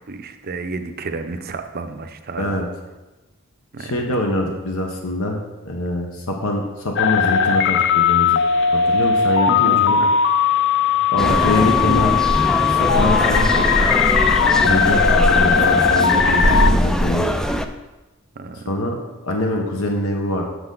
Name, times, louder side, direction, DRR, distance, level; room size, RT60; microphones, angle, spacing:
voice 1, 0.0-2.6 3.7-4.0 9.5-10.1 11.3-11.8 14.6-14.9 18.4-18.8, right 3 dB, 45° right, 8 dB, 0.6 m, -31 dB
voice 2, 3.8-5.4 5.6-8.4 8.7-10.0 11.1-12.1 12.7-13.7 14.6-17.3 18.7-19.0 19.2-20.4, left 1 dB, 75° left, 1 dB, 1.0 m, -24 dB
sound 1, 7.0-16.7, left 7 dB, 60° left, 0.5 m, -18 dB
sound 2, 11.2-17.6, equal, 5° left, 0.3 m, -20 dB
7.9 x 6.5 x 3.9 m, 1.1 s
head